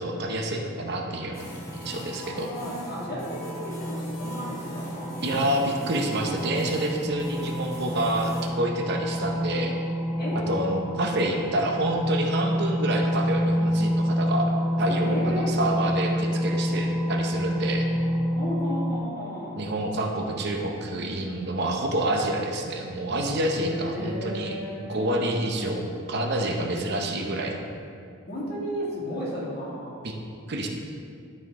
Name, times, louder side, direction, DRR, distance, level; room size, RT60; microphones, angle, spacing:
voice 1, 0.0-1.5 1.8-2.5 5.2-9.7 10.5-14.5 14.8-17.9 19.6-24.6 24.9-27.6 30.0-30.2 30.5-30.7, right 1 dB, 50° right, 2 dB, 0.7 m, -28 dB
sound 1, 1.3-8.5, equal, 65° left, 1.7 m, -43 dB
sound 2, 1.4-19.0, equal, 5° right, 0.4 m, -28 dB
voice 2, 2.2-5.1 10.2-10.5 14.8-15.6 18.3-19.7 23.6-25.3 28.3-30.0, equal, 45° left, -6 dB, 1.9 m, -34 dB
12.0 x 4.3 x 3.6 m, 2.4 s
head